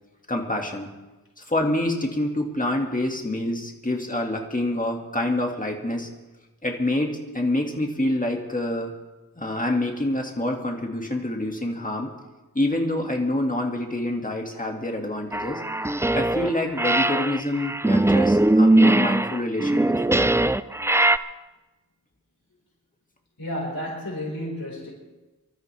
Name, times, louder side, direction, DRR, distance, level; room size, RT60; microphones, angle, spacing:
voice 1, 0.3-0.9 1.4-6.1 6.6-8.9 9.4-12.1 12.6-15.6 16.1-20.3, left 1 dB, 25° left, 2 dB, 2.0 m, -26 dB
sound 1, 15.3-16.5 16.8-21.2, right 1 dB, 10° right, 0.4 m, -20 dB
voice 2, 23.4-24.9, left 1 dB, 80° left, -2 dB, 4.9 m, -31 dB
25.5 x 13.0 x 3.4 m, 1.1 s
wide cardioid pair, 55°, 35 cm